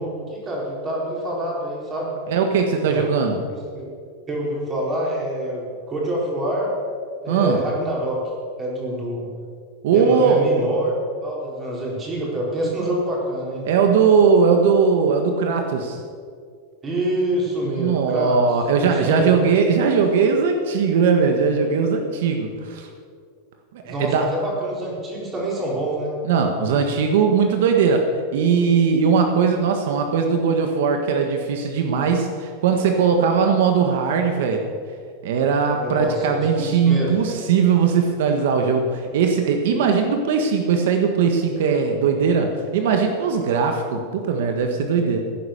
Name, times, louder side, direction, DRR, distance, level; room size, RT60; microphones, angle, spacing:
voice 1, 0.0-2.2 2.8-3.2 3.5-3.9 4.3-6.7 7.2-8.2 8.6-9.3 9.9-10.9 11.2-13.7 16.8-18.4 18.8-19.3 23.8-26.1 35.8-37.1, right 1 dB, 20° right, -3 dB, 4.2 m, -26 dB
voice 2, 2.3-3.4 7.3-7.6 9.8-10.5 13.6-16.0 17.7-22.9 23.7-24.3 26.2-28.1 28.3-34.6 35.2-45.2, right 6 dB, 75° right, 4 dB, 1.5 m, -19 dB
16.5 x 10.0 x 6.6 m, 2.1 s
supercardioid pair, 165°, 0 cm